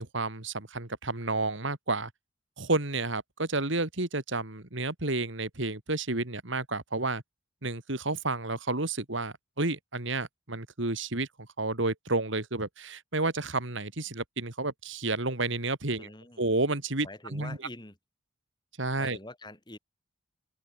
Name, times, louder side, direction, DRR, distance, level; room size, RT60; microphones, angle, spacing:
voice 1, 0.0-2.1 2.6-7.2 7.6-16.1 16.4-17.6 18.8-19.2, right 2 dB, 65° right, 2.6 m, -31 dB
voice 2, 16.0-16.4 17.0-18.0 19.0-19.8, left 2 dB, 20° left, 4.0 m, -45 dB
head